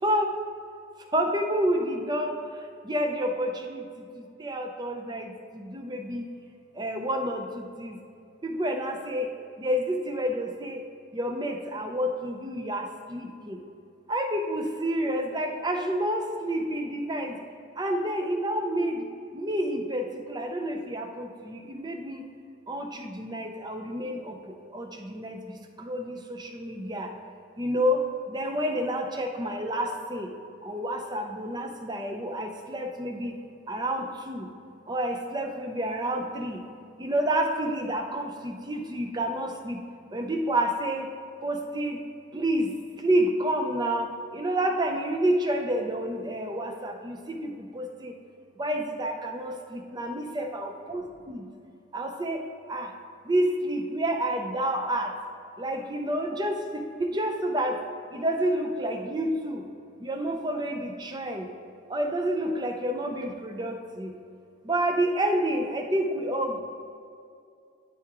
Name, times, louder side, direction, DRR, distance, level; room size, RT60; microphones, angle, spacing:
voice 1, 0.0-0.3 1.1-6.3 6.7-8.0 8.4-9.3 9.6-10.8 11.1-13.6 14.1-17.4 17.8-19.1 19.3-22.3 22.7-27.1 27.6-30.3 30.6-33.4 33.7-34.5 34.9-36.6 37.0-39.8 40.1-41.1 41.4-42.0 42.3-42.7 43.0-48.1 48.6-51.5 51.9-52.9 53.2-55.1 55.6-57.8 58.1-59.7 60.0-61.5 61.9-64.1 64.6-66.6, right 1 dB, 20° right, 4 dB, 0.5 m, -29 dB
12.5 x 4.8 x 3.0 m, 2.5 s
head